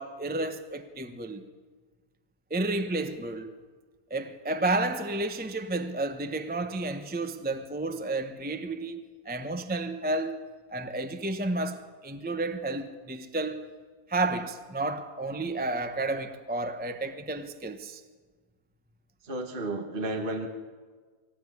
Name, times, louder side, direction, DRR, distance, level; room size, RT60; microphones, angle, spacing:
voice 1, 0.0-1.5 2.5-3.6 4.1-10.4 10.7-13.7 14.1-18.0, right 2 dB, 5° right, 0.9 m, -31 dB
voice 2, 19.2-20.5, right 2 dB, 35° right, 1.7 m, -32 dB
25.0 x 15.5 x 9.6 m
omnidirectional pair, 1.7 m